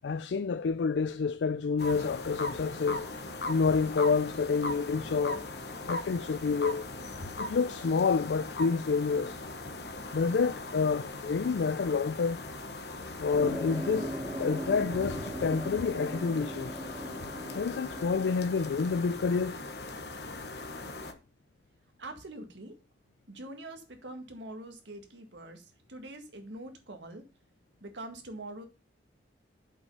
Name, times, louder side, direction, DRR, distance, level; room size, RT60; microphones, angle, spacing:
voice 1, 0.0-3.1 3.5-5.5 5.8-6.9 7.4-9.4 10.1-12.4 13.2-16.8 17.5-19.6, left 5 dB, 80° left, 0.4 m, -28 dB
sound 1, 1.8-21.1, left 2 dB, 65° left, 1.1 m, -39 dB
sound 2, 13.3-18.3, right 1 dB, 15° right, 1.1 m, -39 dB
voice 2, 22.0-22.8 23.3-27.3 27.8-28.6, right 1 dB, 85° right, 1.9 m, -44 dB
7.5 x 5.6 x 5.5 m
head